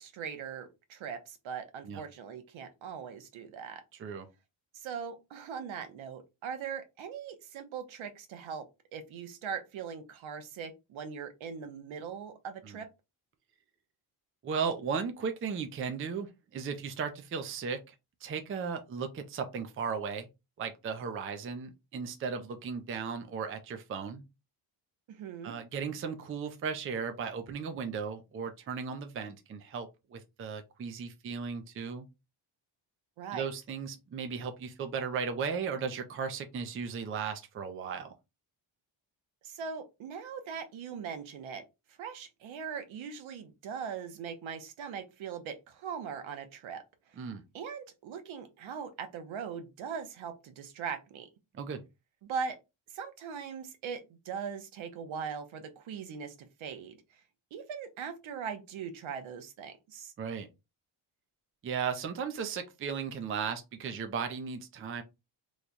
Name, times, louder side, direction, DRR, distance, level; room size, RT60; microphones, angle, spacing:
voice 1, 0.0-3.8 4.7-8.7 8.9-12.9 25.1-25.5 33.2-33.5 39.4-41.6 42.0-46.8 47.1-47.2 47.5-51.3 52.2-52.6 52.9-57.0 57.5-60.1, right 6 dB, 70° right, 0.9 m, -40 dB
voice 2, 14.4-17.9 18.2-20.3 20.6-24.2 25.4-32.1 33.3-38.1 47.2-47.4 51.5-51.8 60.2-60.5 61.6-65.0, right 6 dB, 30° right, 0.4 m, -36 dB
3.1 x 2.2 x 3.8 m
cardioid pair, 145°, 49 cm